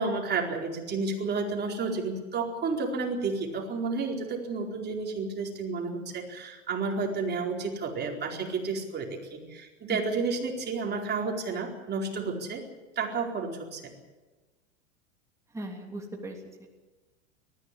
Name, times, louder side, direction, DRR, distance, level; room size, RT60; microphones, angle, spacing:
voice 1, 0.0-12.6 13.0-13.9, right 4 dB, 25° right, 1 dB, 4.5 m, -31 dB
voice 2, 15.5-16.7, right 1 dB, 10° right, 0 dB, 3.1 m, -38 dB
19.5 x 14.5 x 9.9 m, 1.2 s
hypercardioid pair, 105°, 38 cm